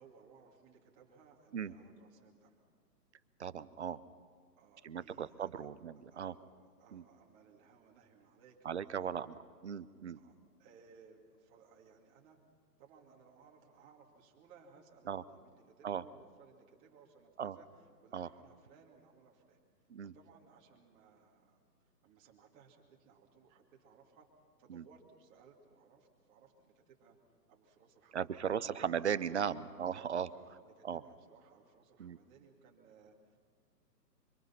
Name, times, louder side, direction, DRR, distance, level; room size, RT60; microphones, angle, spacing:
voice 1, 0.0-2.6 4.6-5.7 6.1-9.4 10.2-12.4 12.8-17.7 18.0-19.6 20.0-21.6 22.0-24.3 24.6-27.2 27.5-28.8 29.3-29.6 30.3-33.4, right 6 dB, 15° right, 0 dB, 2.4 m, -62 dB
voice 2, 3.4-4.0 4.8-6.3 6.9-7.0 8.6-10.2 15.1-15.2 15.8-16.0 17.4-17.6 18.1-18.3 19.9-20.1 24.7-24.8 28.1-30.3 30.8-31.0 32.0-32.2, right 8 dB, 45° right, 15 dB, 0.8 m, -37 dB
25.5 x 25.0 x 5.9 m, 2.1 s
hypercardioid pair, 160°, 50 cm